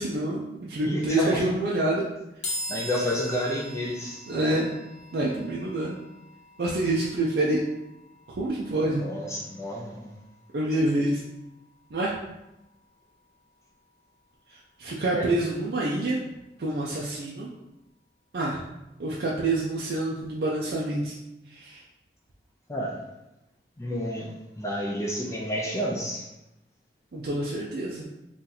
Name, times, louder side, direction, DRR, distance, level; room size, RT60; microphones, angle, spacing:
voice 1, 0.0-2.0 4.3-4.7 5.1-6.0 6.6-7.6 8.4-9.0 10.5-11.2 11.9-12.1 14.8-16.2 16.6-17.5 18.3-18.6 19.0-21.2 21.5-21.8 27.1-28.0, right 2 dB, 65° right, -4 dB, 0.4 m, -27 dB
voice 2, 0.8-1.4 2.7-4.2 9.0-10.1 15.1-15.3 22.7-22.9 23.8-24.3 24.6-26.3, equal, 15° left, -2 dB, 0.4 m, -30 dB
sound 1, 2.4-15.8, left 1 dB, 45° left, 0.9 m, -44 dB
2.7 x 2.4 x 3.9 m, 0.93 s
head